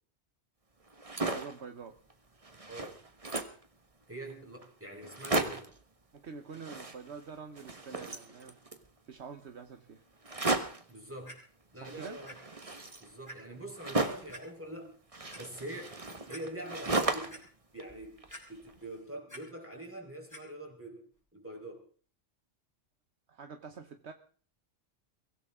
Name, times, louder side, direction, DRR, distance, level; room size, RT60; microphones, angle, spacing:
sound 1, 0.9-1.6 2.1-2.2 2.4-3.6 4.3-4.4 4.6-4.7 5.0-5.8 6.5-7.3 7.5-8.9 10.2-10.9 11.8-14.4 15.1-17.5 17.8-18.7, right 2 dB, 30° right, 1.5 m, -35 dB
voice 1, 1.2-2.0 6.1-8.6 9.1-10.0 11.7-12.2 23.3-24.1, right 5 dB, 70° right, 7 dB, 1.3 m, -46 dB
voice 2, 2.7-3.0 4.1-5.7 10.9-11.4 11.7-12.3 13.0-14.9 15.4-15.9 16.3-17.4 17.7-18.2 18.5-21.0 21.3-21.8, right 1 dB, 10° right, 1 dB, 4.6 m, -44 dB
Clock, 11.2-11.3 12.3-12.4 12.8-12.9 13.3-13.4 14.3-14.4 15.1-15.4 15.9-16.0 16.3-16.4 16.9-17.4 18.3-18.8 19.1-19.4 20.3-20.4 21.1-21.2, equal, 15° left, 5.8 m, -48 dB
23.0 x 16.5 x 3.7 m, 0.43 s
omnidirectional pair, 1.2 m